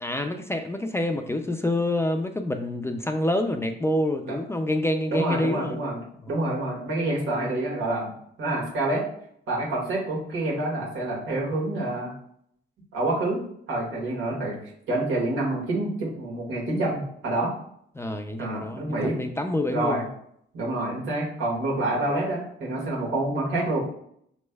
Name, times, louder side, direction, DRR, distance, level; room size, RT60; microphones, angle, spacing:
voice 1, 0.0-5.8 6.4-6.6 18.0-20.0, left 1 dB, 15° left, 6 dB, 0.4 m, -27 dB
voice 2, 5.1-8.1 8.4-9.0 9.5-12.1 12.9-13.4 13.7-14.6 14.9-17.5 18.4-19.2 19.7-20.0 20.5-23.8, right 2 dB, 80° right, -3 dB, 1.7 m, -27 dB
5.2 x 3.2 x 2.3 m, 0.68 s
cardioid pair, 90°, 20 cm